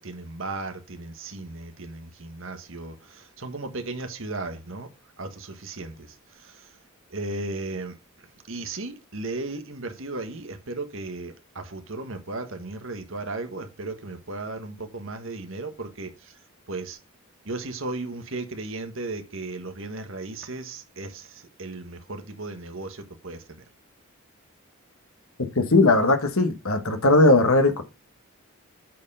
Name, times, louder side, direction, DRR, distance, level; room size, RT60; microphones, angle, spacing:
voice 1, 0.0-4.9 5.2-5.9 6.4-6.6 7.1-7.9 8.5-16.1 16.7-17.0 17.4-23.6, right 2 dB, 60° right, 1.4 m, -35 dB
voice 2, 25.5-27.8, left 2 dB, 75° left, 1.4 m, -18 dB
8.3 x 4.5 x 5.4 m
head